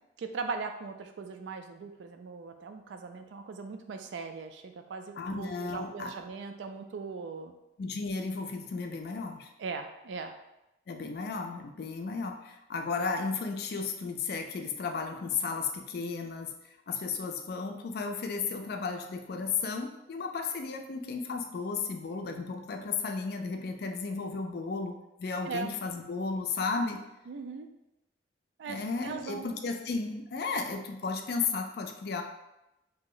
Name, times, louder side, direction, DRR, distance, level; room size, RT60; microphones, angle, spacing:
voice 1, 0.2-7.5 9.6-10.3 25.5-25.7 27.3-27.7 28.6-29.5, right 4 dB, 85° right, 6 dB, 0.3 m, -39 dB
voice 2, 5.2-6.1 7.8-9.5 10.9-16.5 16.9-27.0 28.7-32.2, left 4 dB, 60° left, 5 dB, 0.4 m, -34 dB
2.8 x 2.0 x 3.8 m, 0.91 s
head